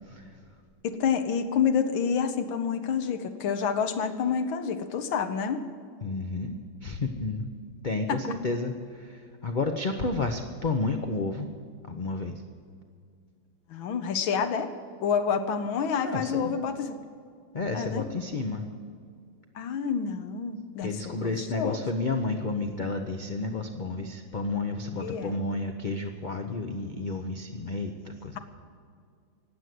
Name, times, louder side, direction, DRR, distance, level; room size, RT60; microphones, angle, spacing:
voice 1, 0.1-0.4 6.0-7.5 7.8-11.5 11.8-12.4 16.0-16.5 17.5-18.7 20.8-28.4, left 3 dB, 50° left, 4 dB, 0.5 m, -31 dB
voice 2, 0.8-5.7 8.1-8.2 13.7-14.7 15.0-17.0 17.7-18.1 19.6-21.8 25.0-25.4, left 6 dB, 75° left, 7 dB, 1.8 m, -28 dB
18.5 x 8.1 x 7.7 m, 2.2 s
omnidirectional pair, 2.2 m